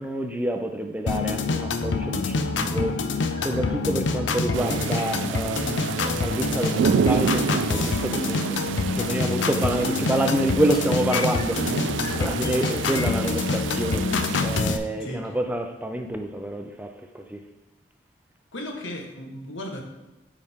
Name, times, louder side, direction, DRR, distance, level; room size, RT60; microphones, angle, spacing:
voice 1, 0.0-2.9 3.4-5.7 6.0-8.6 8.9-11.8 12.1-14.1 14.4-17.4, right 1 dB, 10° right, 5 dB, 0.5 m, -28 dB
sound 1, 1.1-14.8, left 3 dB, 75° left, 0.6 m, -26 dB
sound 2, 2.4-2.5 2.7-3.0 3.3-3.7 4.0-5.8 6.9-7.1 7.6-8.0 8.3-8.5 8.8-9.1 9.5-13.3, left 3 dB, 20° left, 1.0 m, -42 dB
sound 3, 4.5-14.6, right 6 dB, 70° right, 0.3 m, -29 dB
voice 2, 12.7-13.3 15.0-15.4 18.5-19.8, left 1 dB, 90° left, 2 dB, 1.4 m, -36 dB
8.8 x 4.9 x 3.7 m, 1.1 s
head